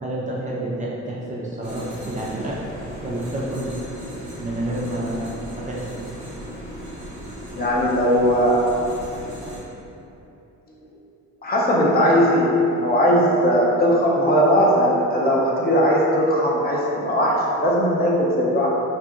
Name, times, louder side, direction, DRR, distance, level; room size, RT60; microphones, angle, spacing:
voice 1, 0.0-2.6 3.0-3.7 4.4-6.0, right 1 dB, 25° right, -6 dB, 0.4 m, -29 dB
sound 1, 1.6-9.6, equal, 70° right, 0.8 m, -37 dB
voice 2, 7.6-8.7 9.5-9.6 10.7-10.9 11.4-18.7, equal, 30° left, -4 dB, 0.5 m, -19 dB
2.7 x 2.6 x 2.3 m, 2.9 s
cardioid pair, 90°, 30 cm